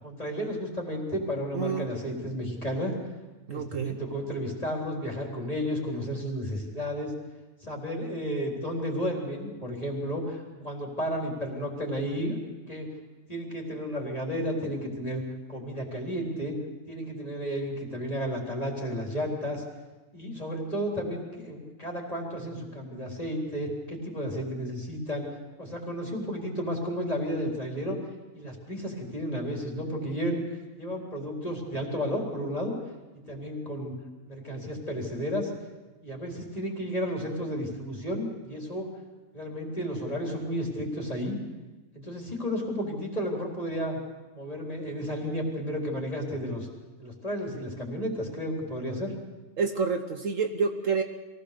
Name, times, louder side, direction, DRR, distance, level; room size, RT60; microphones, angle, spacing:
voice 1, 0.0-3.0 3.5-7.1 7.6-12.9 13.3-15.2 15.5-16.6 16.9-19.6 20.1-25.3 25.6-28.0 28.3-30.4 30.8-32.8 33.3-33.9 34.3-35.5 36.0-38.9 39.3-41.4 41.9-44.0 44.3-46.7 47.0-49.1, equal, 25° left, -1 dB, 4.0 m, -32 dB
voice 2, 1.5-1.9 3.5-4.0 49.6-51.0, right 5 dB, 60° right, 6 dB, 1.3 m, -28 dB
23.0 x 17.0 x 6.8 m, 1.2 s
omnidirectional pair, 1.6 m